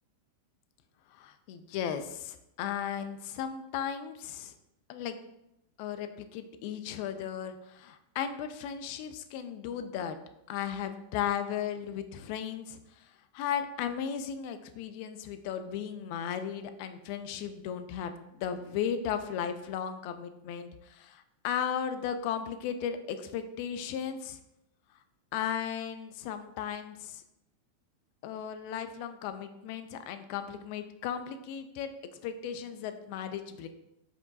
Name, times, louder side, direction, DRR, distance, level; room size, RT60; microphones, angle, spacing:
voice 1, 1.1-4.5 4.9-5.2 5.8-10.2 10.5-24.4 25.3-27.2 28.2-33.7, left 8 dB, 45° left, 8 dB, 0.4 m, -36 dB
5.3 x 2.2 x 4.0 m, 0.84 s
figure-of-eight pair, 90°, 0 cm